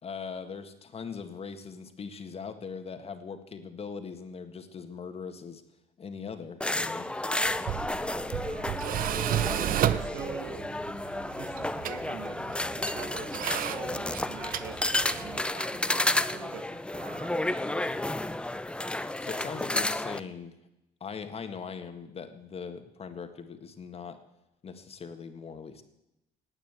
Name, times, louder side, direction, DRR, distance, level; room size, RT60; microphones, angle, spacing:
voice 1, 0.0-5.6 6.0-7.1 19.2-20.5 21.0-24.2 24.6-25.8, left 5 dB, 35° left, 8 dB, 1.8 m, -40 dB
sound 1, 6.6-20.2, left 1 dB, 5° left, 0.6 m, -31 dB
Tools, 7.5-15.4, right 11 dB, 55° right, 0.7 m, -33 dB
voice 2, 8.3-9.1 9.6-12.5 12.7-17.4 17.8-18.2, right 7 dB, 75° right, 6 dB, 1.6 m, -45 dB
18.0 x 9.0 x 8.2 m, 0.91 s
cardioid pair, 110°, 17 cm